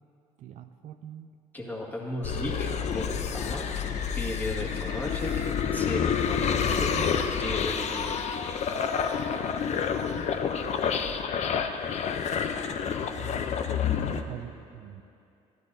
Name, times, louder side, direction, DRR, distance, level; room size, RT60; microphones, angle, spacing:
voice 1, 0.4-1.3 6.6-7.1 13.2-13.4 13.8-15.0, right 11 dB, 60° right, 9 dB, 0.4 m, -43 dB
voice 2, 1.5-3.7 4.2-5.3 5.7-6.9 7.4-8.5, left 1 dB, 10° left, -3 dB, 1.9 m, -36 dB
sound 1, 2.2-14.2, left 7 dB, 50° left, 0.6 m, -29 dB
Bird, 3.3-7.1 8.8-10.6, left 3 dB, 80° left, 1.1 m, -44 dB
13.0 x 11.5 x 2.7 m, 2.6 s
supercardioid pair, 80°, 14 cm